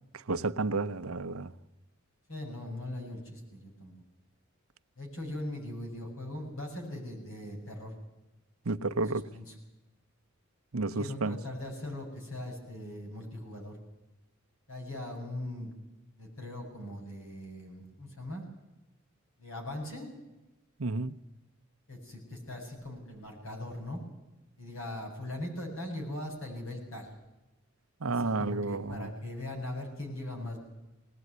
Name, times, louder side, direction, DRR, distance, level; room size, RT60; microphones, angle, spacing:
voice 1, 0.3-1.5 8.7-9.3 10.7-11.4 20.8-21.2 28.0-29.1, right 3 dB, 85° right, 0.9 m, -31 dB
voice 2, 2.3-3.9 5.0-7.9 9.1-9.6 11.0-13.8 14.7-15.7 16.2-18.4 19.4-20.1 21.9-24.0 24.6-27.1 28.1-30.6, left 1 dB, 70° left, 7.5 m, -40 dB
20.5 x 18.5 x 9.5 m
head